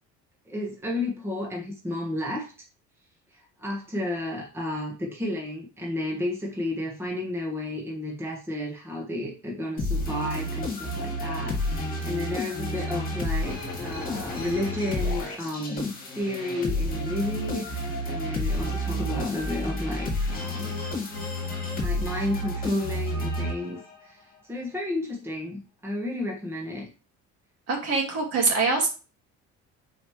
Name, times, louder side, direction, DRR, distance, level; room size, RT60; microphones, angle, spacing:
voice 1, 0.5-2.5 3.3-20.8 21.7-26.9, left 1 dB, 10° right, -1 dB, 1.3 m, -32 dB
sound 1, 9.8-24.0, left 1 dB, 30° left, 2.3 m, -30 dB
voice 2, 27.7-28.9, right 3 dB, 55° right, 1 dB, 2.1 m, -24 dB
6.3 x 4.8 x 3.2 m, 0.33 s
cardioid pair, 155°, 30 cm